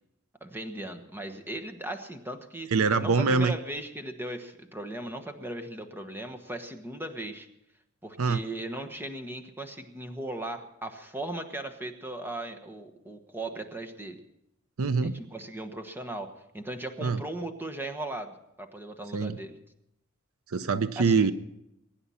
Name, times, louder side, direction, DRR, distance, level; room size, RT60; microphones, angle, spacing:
voice 1, 0.4-2.7 3.0-7.5 8.0-14.2 15.0-19.5 21.0-21.3, right 1 dB, 10° right, 6 dB, 1.2 m, -37 dB
voice 2, 2.7-3.5 8.2-8.4 14.8-15.1 17.0-17.2 19.1-19.4 20.5-21.3, right 4 dB, 70° right, 13 dB, 0.7 m, -24 dB
22.5 x 10.0 x 5.7 m, 0.86 s
head